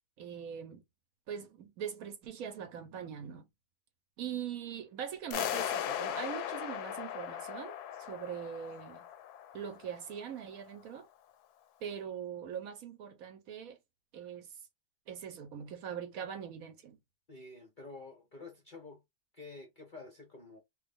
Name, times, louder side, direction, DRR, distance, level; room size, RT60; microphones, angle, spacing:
voice 1, 0.2-0.8 1.3-3.5 4.2-7.7 8.0-9.1 9.5-11.1 11.8-13.8 14.1-14.5 15.1-17.0, right 8 dB, 70° right, 1.0 m, -42 dB
sound 1, 5.3-10.3, left 10 dB, 75° left, 1.1 m, -38 dB
voice 2, 17.3-19.0 19.3-20.6, left 3 dB, 50° left, 0.6 m, -49 dB
3.1 x 2.2 x 3.4 m
omnidirectional pair, 1.7 m